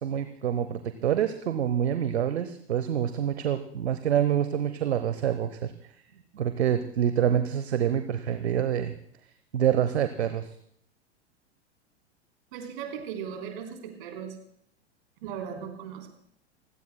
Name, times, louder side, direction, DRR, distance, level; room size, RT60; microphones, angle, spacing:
voice 1, 0.0-5.7 6.3-8.9 9.5-10.5, right 9 dB, 65° right, 10 dB, 0.9 m, -26 dB
voice 2, 12.5-14.4 15.2-16.1, right 7 dB, 50° right, 3 dB, 3.7 m, -37 dB
29.5 x 16.5 x 2.2 m, 0.69 s
figure-of-eight pair, 95°, 35 cm